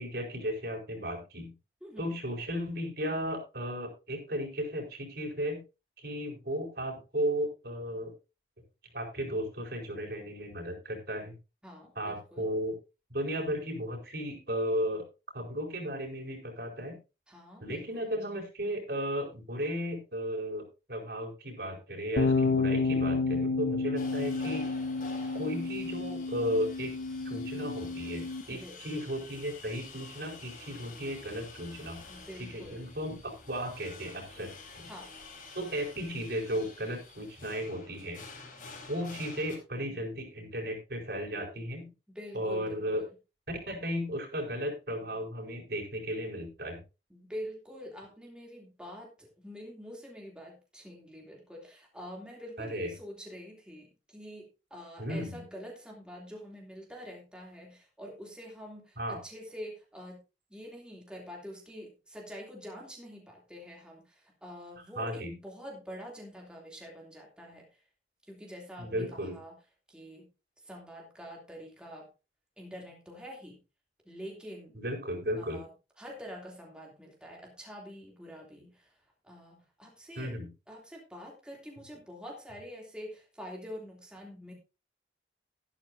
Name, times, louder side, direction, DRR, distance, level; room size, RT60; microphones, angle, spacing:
voice 1, 0.0-1.5 2.0-5.6 6.0-8.1 8.9-11.3 12.0-12.7 13.1-15.0 15.3-17.0 17.6-24.6 25.3-26.9 27.2-32.0 32.5-34.9 35.5-38.2 38.9-41.9 42.3-43.0 43.7-46.8 52.6-52.9 55.0-55.4 59.0-59.2 65.0-65.3 68.8-69.3 74.8-75.6 80.2-80.5, equal, 60° right, 1 dB, 4.5 m, -35 dB
voice 2, 1.8-2.2 11.6-12.5 17.3-18.1 23.9-24.0 28.5-28.8 32.1-32.9 34.8-35.1 39.9-40.0 42.1-43.2 47.1-60.2 60.5-67.8 68.3-69.5 69.9-70.3 70.6-72.1 72.6-73.6 74.0-74.8 75.4-75.7 76.0-78.9 79.2-80.3 80.7-84.5, equal, 5° right, -2 dB, 2.8 m, -46 dB
sound 1, 22.2-28.4, left 3 dB, 85° left, 1.2 m, -30 dB
sound 2, 24.0-39.6, left 3 dB, 45° left, 4.2 m, -49 dB
13.0 x 12.5 x 2.7 m, 0.29 s
head